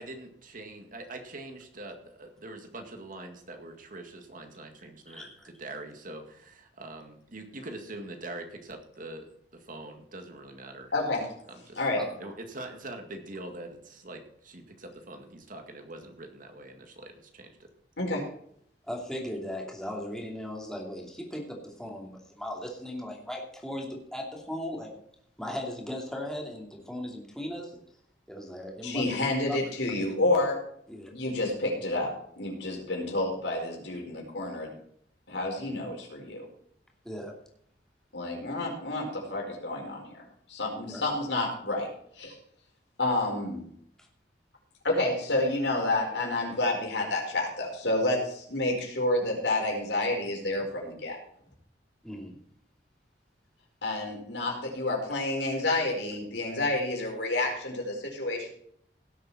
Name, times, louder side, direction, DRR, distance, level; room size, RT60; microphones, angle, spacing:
voice 1, 0.0-10.9 11.5-11.8 12.2-17.7, right 2 dB, 50° right, 5 dB, 2.1 m, -43 dB
voice 2, 5.1-5.5 12.0-12.3 18.9-25.0 25.4-27.8 28.3-29.6 29.9-30.0 30.9-31.1 37.0-37.3 40.9-41.0 44.0-44.1 52.0-52.4, left 1 dB, 5° left, -1 dB, 2.8 m, -38 dB
voice 3, 10.9-11.2 11.7-12.0 18.0-18.2 28.8-30.6 31.1-34.7 35.3-36.5 38.1-40.2 40.5-41.9 42.2-42.4 43.0-43.6 44.8-51.2 53.8-58.5, left 2 dB, 75° left, 0 dB, 4.9 m, -29 dB
17.5 x 8.1 x 4.3 m, 0.67 s
head